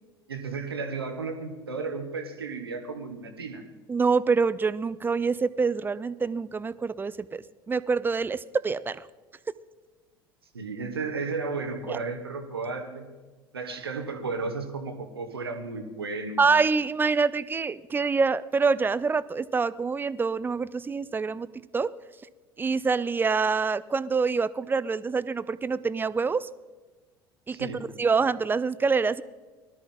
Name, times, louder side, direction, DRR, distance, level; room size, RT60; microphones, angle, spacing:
voice 1, 0.3-3.6 10.5-13.1 13.5-16.4 27.5-27.9, right 4 dB, 80° right, 6 dB, 1.4 m, -34 dB
voice 2, 3.9-9.0 11.9-12.0 16.4-21.9 22.6-26.5 27.5-27.7 28.0-29.2, right 4 dB, 15° right, 18 dB, 0.4 m, -26 dB
19.5 x 13.0 x 3.8 m, 1.3 s
figure-of-eight pair, 70°, 13 cm